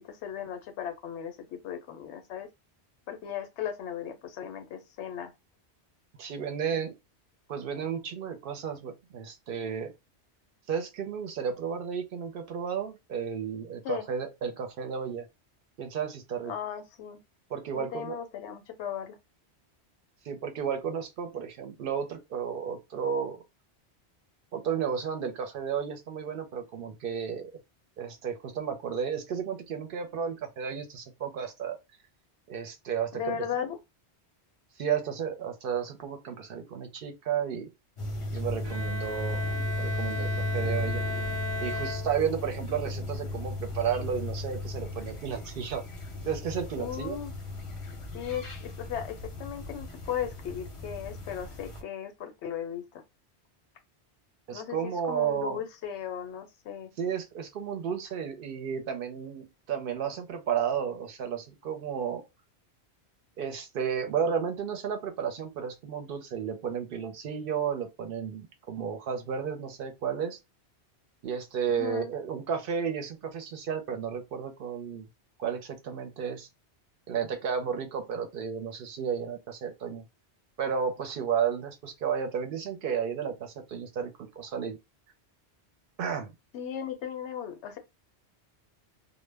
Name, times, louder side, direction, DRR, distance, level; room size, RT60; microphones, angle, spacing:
voice 1, 0.0-2.5 3.1-5.3 13.8-14.1 16.4-17.2 17.7-19.2 33.1-33.8 46.8-47.3 48.1-53.0 54.5-56.9 71.7-72.1 86.5-87.8, left 9 dB, 80° left, 0.9 m, -36 dB
voice 2, 6.2-7.0 7.5-9.9 10.7-15.3 15.8-16.5 17.5-18.2 20.2-23.4 24.5-27.5 28.0-31.8 32.5-33.4 34.8-37.7 38.3-39.4 39.8-41.0 41.6-45.8 46.3-47.2 54.5-55.6 57.0-62.2 63.4-70.4 71.2-75.1 75.4-76.5 77.1-80.1 80.6-84.8 86.0-86.3, right 7 dB, 60° right, 0.7 m, -33 dB
sound 1, 38.0-51.8, left 1 dB, 35° left, 0.6 m, -35 dB
Bowed string instrument, 38.6-42.6, left 1 dB, 30° right, 0.7 m, -36 dB
2.1 x 2.1 x 3.2 m
omnidirectional pair, 1.2 m